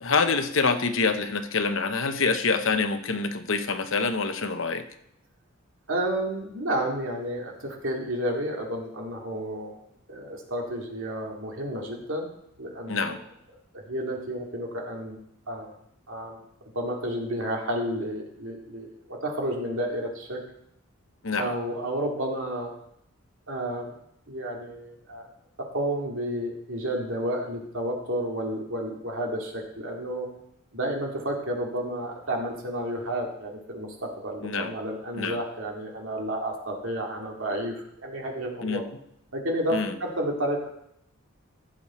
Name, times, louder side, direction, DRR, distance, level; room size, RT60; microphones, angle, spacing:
voice 1, 0.0-4.8 12.9-13.2 21.2-21.6 34.4-34.7 35.2-35.4 38.6-38.8 39.7-39.9, left 4 dB, 65° left, 8 dB, 0.9 m, -26 dB
voice 2, 5.9-9.7 10.1-12.3 12.6-13.2 13.7-15.2 15.5-15.7 16.1-16.4 16.7-20.4 21.4-22.7 23.5-23.9 24.3-25.3 25.6-30.3 30.7-38.8 39.3-40.7, right 1 dB, 65° right, 0 dB, 2.4 m, -31 dB
15.0 x 7.5 x 4.3 m, 0.75 s
head